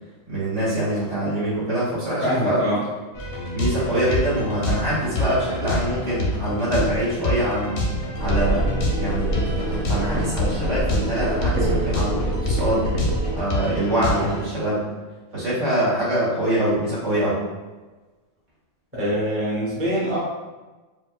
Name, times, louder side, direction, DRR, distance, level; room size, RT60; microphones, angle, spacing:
voice 1, 0.3-2.6 3.5-7.8 8.2-8.6 9.0-12.9 13.3-14.8 15.3-17.4, right 1 dB, 60° right, -10 dB, 1.8 m, -24 dB
voice 2, 2.2-2.8 18.9-20.2, equal, 15° right, -7 dB, 0.7 m, -24 dB
sound 1, 3.1-14.5, left 1 dB, 55° left, 0.7 m, -27 dB
sound 2, 8.2-13.4, right 2 dB, 80° right, 1.0 m, -26 dB
4.4 x 2.2 x 2.3 m, 1.2 s
omnidirectional pair, 1.4 m